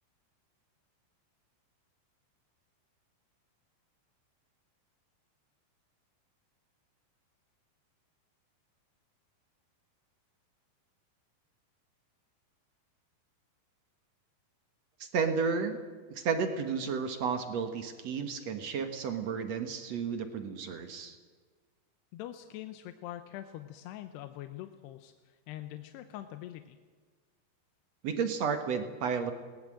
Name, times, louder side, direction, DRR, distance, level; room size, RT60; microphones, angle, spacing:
voice 1, 15.0-15.8 16.1-21.2 28.0-29.3, right 6 dB, 60° right, 7 dB, 1.9 m, -32 dB
voice 2, 22.1-26.8, left 13 dB, 85° left, 8 dB, 2.9 m, -44 dB
21.0 x 19.0 x 7.7 m, 1.5 s
omnidirectional pair, 4.7 m